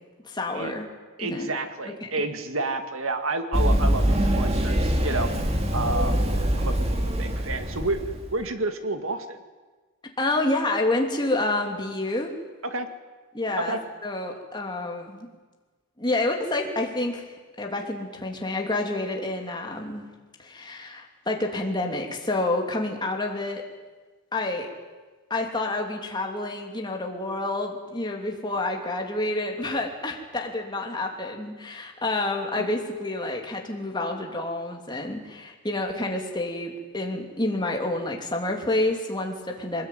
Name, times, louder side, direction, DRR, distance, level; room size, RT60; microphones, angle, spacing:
voice 1, 0.2-0.8 1.2-1.5 2.0-2.1 10.2-12.3 13.3-15.3 16.0-17.3 17.6-20.0 20.4-23.6 24.3-24.7 25.3-39.9, left 2 dB, 20° left, 2 dB, 3.0 m, -28 dB
voice 2, 1.2-5.4 5.7-6.2 6.6-6.8 7.0-8.0 8.3-9.4 12.6-12.9 13.6-13.8 32.6-32.7, right 2 dB, 70° right, 7 dB, 2.2 m, -30 dB
Run, 3.5-8.3, equal, 30° right, 2.4 m, -24 dB
23.0 x 20.0 x 9.4 m, 1.3 s
head